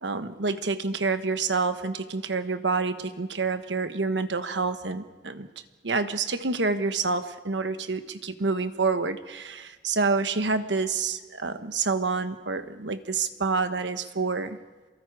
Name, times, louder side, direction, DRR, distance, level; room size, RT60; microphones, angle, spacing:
voice 1, 0.0-5.5 5.8-14.6, right 4 dB, 80° right, 9 dB, 1.2 m, -28 dB
28.5 x 22.5 x 4.9 m, 1.3 s
head